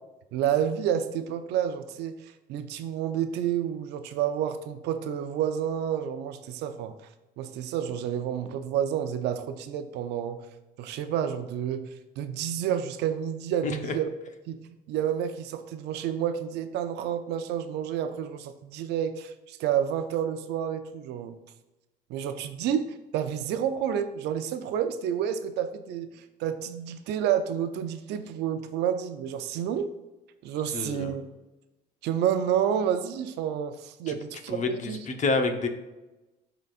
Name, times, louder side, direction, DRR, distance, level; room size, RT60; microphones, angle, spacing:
voice 1, 0.3-6.9 7.4-10.4 10.8-11.9 12.2-14.1 14.5-14.6 14.9-21.4 22.1-29.9 30.4-31.2 32.0-35.0, right 9 dB, 80° right, 9 dB, 0.6 m, -29 dB
voice 2, 13.6-13.9 30.7-31.1 34.1-34.2 34.5-35.7, left 3 dB, 45° left, 5 dB, 1.0 m, -28 dB
11.5 x 4.0 x 2.5 m, 1.1 s
cardioid pair, 110°, 17 cm